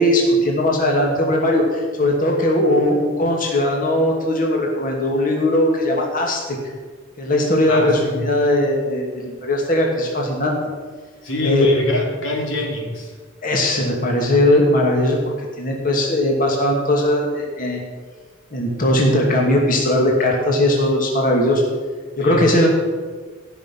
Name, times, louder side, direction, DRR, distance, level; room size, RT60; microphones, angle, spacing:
voice 1, 0.0-6.6 7.2-10.6 11.4-11.7 13.4-15.2 15.6-17.8 18.5-21.6 22.2-22.7, left 1 dB, 45° left, 0 dB, 2.5 m, -19 dB
voice 2, 7.7-8.2 11.2-13.1 22.2-22.7, left 1 dB, 90° left, 0 dB, 3.2 m, -25 dB
15.5 x 6.7 x 9.2 m, 1.5 s
head